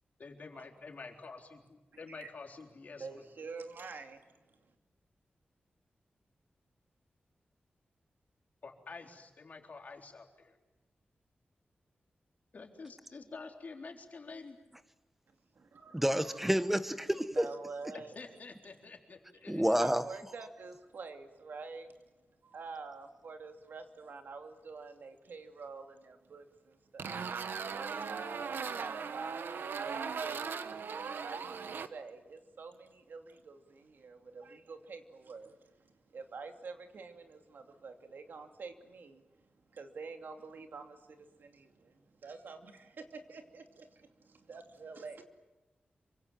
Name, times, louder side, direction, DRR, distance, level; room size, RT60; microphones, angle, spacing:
voice 1, 0.2-3.2 8.6-10.6 12.5-14.6 17.9-19.8, left 4 dB, 50° left, 3 dB, 3.8 m, -48 dB
voice 2, 2.9-4.3 15.5-16.5 17.3-18.2 19.8-21.9 22.4-27.2 27.5-39.2 39.7-45.2, right 4 dB, 70° right, 5 dB, 2.7 m, -47 dB
voice 3, 15.9-17.4 19.5-20.0, equal, 5° right, 12 dB, 1.1 m, -29 dB
sound 1, 27.0-31.9, right 6 dB, 90° right, 1.2 m, -38 dB
27.0 x 25.0 x 7.5 m, 1.1 s
wide cardioid pair, 145°, 3 cm